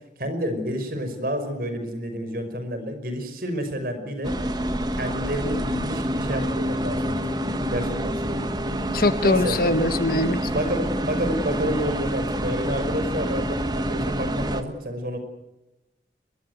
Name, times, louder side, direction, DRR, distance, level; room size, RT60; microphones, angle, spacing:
voice 1, 0.2-4.4 4.9-7.2 7.7-8.5 9.2-9.6 10.5-15.2, equal, 55° right, 8 dB, 5.4 m, -29 dB
sound 1, 4.2-14.6, right 1 dB, 25° right, 1.5 m, -27 dB
voice 2, 8.9-10.4, left 2 dB, 55° left, 11 dB, 1.5 m, -22 dB
23.5 x 21.5 x 8.1 m, 0.99 s
head